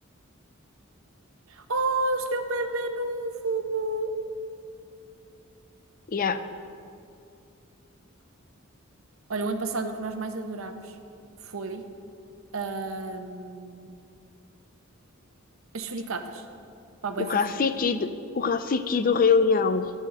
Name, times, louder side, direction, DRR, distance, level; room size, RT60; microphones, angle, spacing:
voice 1, 1.5-4.1 9.3-11.0 11.4-11.8 12.5-14.0 15.7-16.5 17.0-17.7, right 3 dB, 75° right, 6 dB, 0.9 m, -30 dB
voice 2, 6.1-6.4 17.2-19.9, left 5 dB, 45° left, 11 dB, 0.5 m, -24 dB
22.0 x 7.9 x 3.0 m, 2.5 s
head